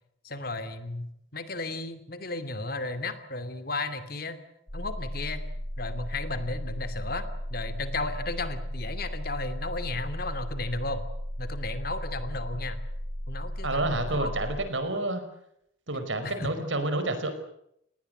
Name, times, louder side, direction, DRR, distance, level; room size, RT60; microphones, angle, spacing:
voice 1, 0.2-4.4 4.7-5.4 5.8-11.1 11.4-12.8 13.3-14.3 16.2-16.5, left 2 dB, 50° left, 10 dB, 2.6 m, -34 dB
sound 1, 4.7-14.7, equal, 30° left, 2.4 m, -35 dB
voice 2, 13.6-15.2 15.9-17.3, right 2 dB, 85° right, 9 dB, 5.3 m, -29 dB
30.0 x 19.5 x 7.9 m, 0.75 s
head